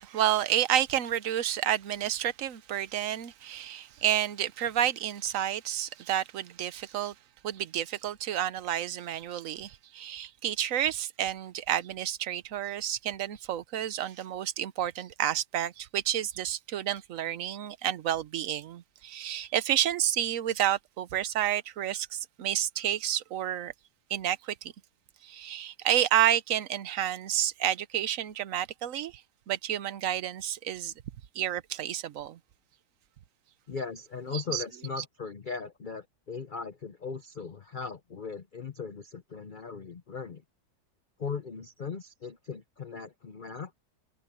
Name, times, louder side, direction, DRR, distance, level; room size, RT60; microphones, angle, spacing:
voice 1, 0.0-7.1 7.4-23.7 24.1-24.7 25.2-29.2 29.5-30.9 31.3-32.4 34.3-34.6 35.0-35.1, right 11 dB, 55° right, 1.0 m, -30 dB
voice 2, 33.7-40.4 41.2-43.7, left 5 dB, 75° left, 0.4 m, -38 dB
omnidirectional pair, 2.0 m